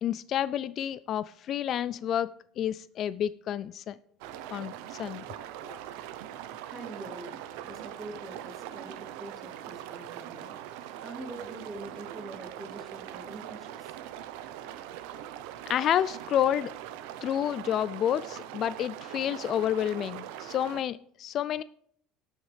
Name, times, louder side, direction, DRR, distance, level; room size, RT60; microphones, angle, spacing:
voice 1, 0.0-2.3 2.6-4.0 4.5-5.2 15.7-16.7 17.2-21.6, left 10 dB, 45° left, 17 dB, 0.3 m, -29 dB
sound 1, 4.2-20.8, right 11 dB, 85° right, 0.7 m, -42 dB
voice 2, 5.6-5.9 6.7-14.0, right 2 dB, 25° right, 2 dB, 2.5 m, -45 dB
18.5 x 6.3 x 3.4 m, 0.63 s
cardioid pair, 140°, 0 cm